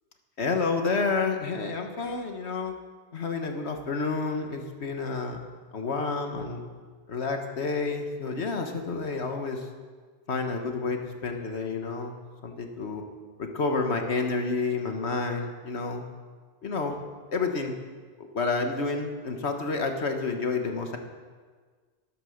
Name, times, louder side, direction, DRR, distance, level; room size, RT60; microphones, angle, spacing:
voice 1, 0.4-2.7 3.1-5.4 5.7-6.6 7.1-9.7 10.3-12.2 12.4-13.0 13.4-16.0 16.6-17.0 17.3-17.7 18.2-21.0, left 4 dB, 70° left, 4 dB, 1.6 m, -29 dB
12.5 x 11.5 x 6.5 m, 1.5 s
omnidirectional pair, 1.1 m